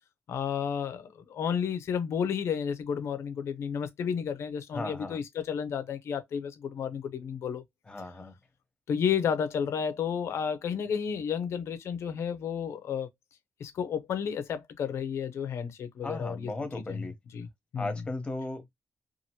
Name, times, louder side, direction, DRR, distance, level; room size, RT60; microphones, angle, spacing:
voice 1, 0.3-7.6 8.9-13.1 13.6-16.5 16.9-17.0 17.3-17.5 17.7-17.9, left 7 dB, 80° left, 0.6 m, -32 dB
voice 2, 4.7-5.2 7.9-8.4 16.0-17.1 17.8-18.7, left 2 dB, 25° left, 1.0 m, -36 dB
2.7 x 2.5 x 2.9 m
cardioid pair, 95°, 5 cm